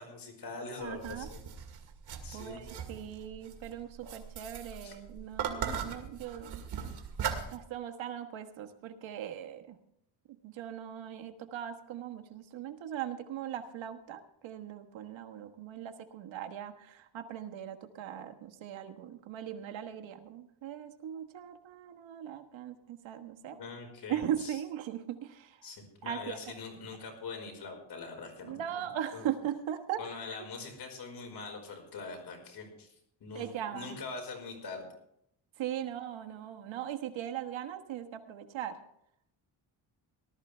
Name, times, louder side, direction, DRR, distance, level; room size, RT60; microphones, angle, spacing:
voice 1, 0.0-1.4 2.2-2.6 4.8-4.9 23.5-24.6 25.6-28.8 29.1-29.2 30.0-32.9 33.2-34.8, left 4 dB, 55° left, 3 dB, 5.0 m, -43 dB
sound 1, 0.8-7.6, right 7 dB, 55° right, 2.3 m, -39 dB
voice 2, 0.8-1.3 2.3-6.6 7.5-9.8 10.4-23.6 24.1-25.7 26.0-26.5 28.4-30.4 33.3-34.0 35.6-38.8, right 10 dB, 75° right, 6 dB, 1.4 m, -39 dB
19.0 x 13.0 x 3.3 m, 0.74 s
cardioid pair, 115°, 46 cm